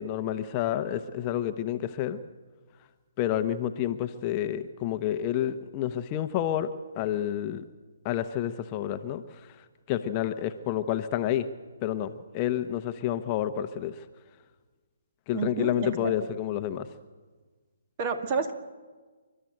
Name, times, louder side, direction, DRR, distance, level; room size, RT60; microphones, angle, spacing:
voice 1, 0.0-2.2 3.2-7.6 8.0-9.2 9.9-11.5 11.8-14.0 15.3-16.9, left 11 dB, 30° left, 9 dB, 1.0 m, -29 dB
voice 2, 15.3-16.1 18.0-18.5, right 5 dB, 35° right, 8 dB, 2.1 m, -30 dB
29.0 x 12.5 x 7.9 m, 1.4 s
hypercardioid pair, 145°, 0 cm